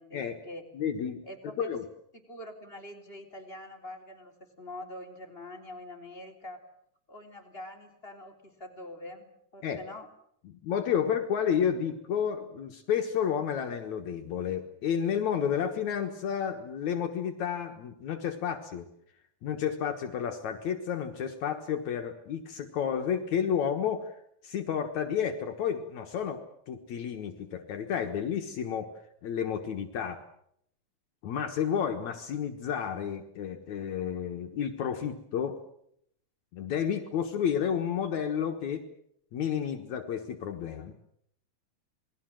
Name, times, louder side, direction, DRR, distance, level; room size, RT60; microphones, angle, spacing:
voice 1, 0.0-0.6 1.2-1.7 2.3-6.7 7.1-10.1, left 1 dB, 20° left, 2 dB, 3.4 m, -44 dB
voice 2, 0.7-1.2 1.6-1.8 9.6-9.8 10.5-18.9 19.4-24.1 24.4-28.9 29.2-30.2 31.2-35.6 36.5-38.8 39.3-40.9, left 8 dB, 70° left, 4 dB, 2.7 m, -31 dB
28.0 x 20.5 x 7.6 m, 0.73 s
omnidirectional pair, 3.6 m